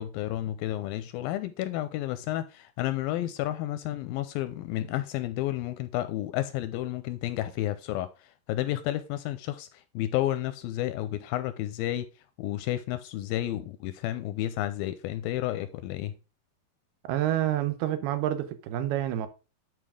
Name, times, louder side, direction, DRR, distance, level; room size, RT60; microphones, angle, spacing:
voice 1, 0.0-12.1 12.4-16.1, left 14 dB, 85° left, 2.1 m, -31 dB
voice 2, 17.0-19.3, right 12 dB, 85° right, 2.8 m, -28 dB
10.0 x 4.7 x 3.7 m
omnidirectional pair, 4.5 m